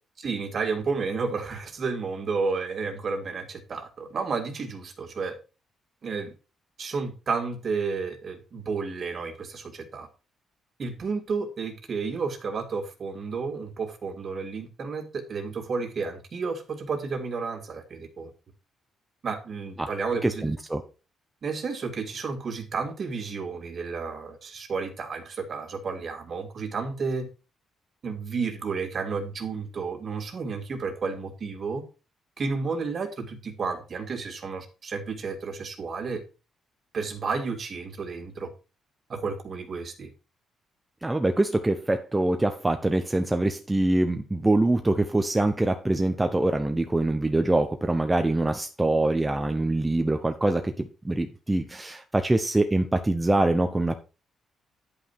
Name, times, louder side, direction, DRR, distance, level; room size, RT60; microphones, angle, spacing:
voice 1, 0.2-5.3 6.0-6.3 6.8-10.1 10.8-18.3 19.2-20.5 21.4-27.3 28.0-31.8 32.4-36.2 36.9-38.5 39.1-40.1, right 4 dB, 45° right, 6 dB, 2.0 m, -31 dB
voice 2, 20.2-20.8 41.0-54.0, right 2 dB, 15° right, 6 dB, 0.9 m, -24 dB
9.7 x 5.7 x 4.5 m, 0.32 s
cardioid pair, 105°, 0 cm